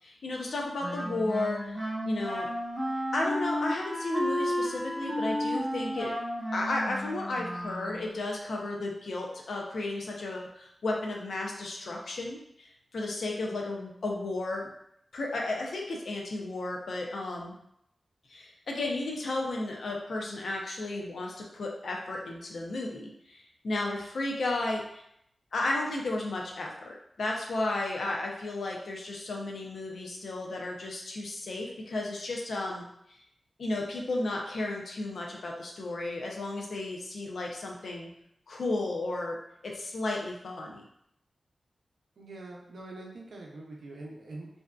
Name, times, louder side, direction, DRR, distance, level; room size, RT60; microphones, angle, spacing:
voice 1, 0.0-1.8 2.0-2.5 3.1-6.2 6.5-14.7 15.1-17.5 18.3-25.0 25.5-33.2 33.6-38.1 38.5-39.4 39.6-40.8, left 2 dB, 80° left, 0 dB, 0.5 m, -33 dB
Wind instrument woodwind instrument, 0.8-8.2, equal, 10° left, 0.8 m, -32 dB
voice 2, 42.2-44.5, right 2 dB, 80° right, -1 dB, 0.5 m, -44 dB
2.6 x 2.2 x 2.3 m, 0.76 s
wide cardioid pair, 80°, 0 cm